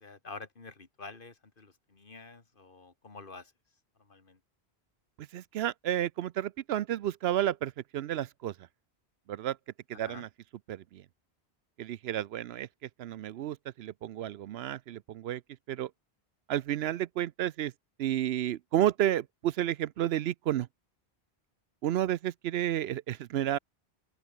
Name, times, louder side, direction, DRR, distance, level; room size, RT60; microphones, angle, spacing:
voice 1, 0.0-3.5 4.0-4.4 9.9-10.3, left 3 dB, 55° left, 2.1 m, -48 dB
voice 2, 5.2-8.5 9.3-9.6 9.9-10.3 10.7-11.0 11.8-12.7 13.0-15.4 15.7-15.9 16.5-17.7 18.0-20.7 21.8-23.6, right 12 dB, 75° right, 0.8 m, -31 dB
open air
omnidirectional pair, 1.1 m